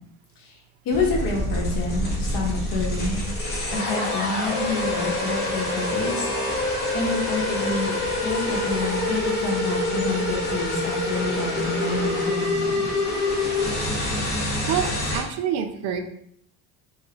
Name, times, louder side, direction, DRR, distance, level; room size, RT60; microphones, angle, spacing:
voice 1, 0.8-3.2 3.7-6.3 6.9-7.9 8.2-12.9, left 3 dB, 60° left, 0 dB, 1.0 m, -28 dB
sound 1, 0.9-15.2, left 2 dB, 25° left, 1.0 m, -26 dB
voice 2, 14.7-16.0, right 8 dB, 75° right, 6 dB, 0.6 m, -27 dB
3.3 x 2.8 x 2.8 m, 0.69 s
cardioid pair, 160°, 38 cm